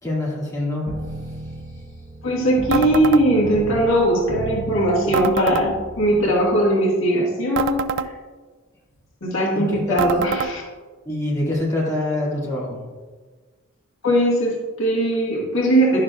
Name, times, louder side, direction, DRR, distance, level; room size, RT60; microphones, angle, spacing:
voice 1, 0.0-0.9 1.2-1.4 1.7-1.8 9.5-10.0 11.0-12.8, left 1 dB, 15° left, -7 dB, 2.2 m, -25 dB
sound 1, 0.9-6.4, right 2 dB, 40° right, 1.0 m, -34 dB
voice 2, 2.2-8.1 9.2-10.6 14.0-16.0, right 1 dB, 65° left, -3 dB, 1.8 m, -20 dB
sound 2, 2.7-3.2 5.1-5.7 7.5-8.1 10.0-10.5, right 7 dB, 60° right, 0.3 m, -24 dB
11.0 x 6.5 x 2.4 m, 1.4 s
head